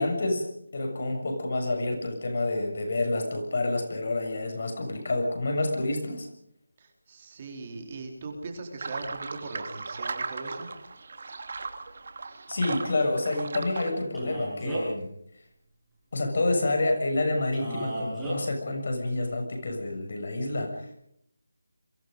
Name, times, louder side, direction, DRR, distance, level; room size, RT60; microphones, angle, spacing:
voice 1, 0.0-6.3 12.5-15.1 16.1-20.9, left 2 dB, 45° left, 4 dB, 6.9 m, -28 dB
voice 2, 6.8-10.7, right 3 dB, 25° right, 2 dB, 3.7 m, -40 dB
sound 1, 8.8-13.9, right 4 dB, 45° right, 2.6 m, -37 dB
Male speech man speaking, 14.1-15.0 17.5-18.4, right 1 dB, ahead, 7.5 m, -34 dB
29.0 x 24.0 x 5.3 m, 0.73 s
figure-of-eight pair, 170°, 0 cm